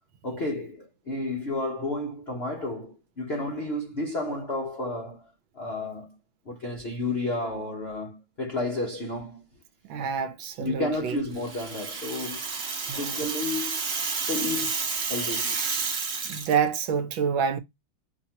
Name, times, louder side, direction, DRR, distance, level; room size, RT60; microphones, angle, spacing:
voice 1, 0.2-5.3 5.5-6.2 6.5-9.4 10.6-12.5 12.9-13.8 14.3-15.6, left 2 dB, 60° left, 0.6 m, -32 dB
voice 2, 9.9-11.2 12.9-13.2 16.2-17.6, right 7 dB, 70° right, 1.3 m, -27 dB
Rattle (instrument), 11.3-16.6, right 5 dB, 50° right, 0.8 m, -30 dB
4.5 x 2.8 x 2.8 m
omnidirectional pair, 2.3 m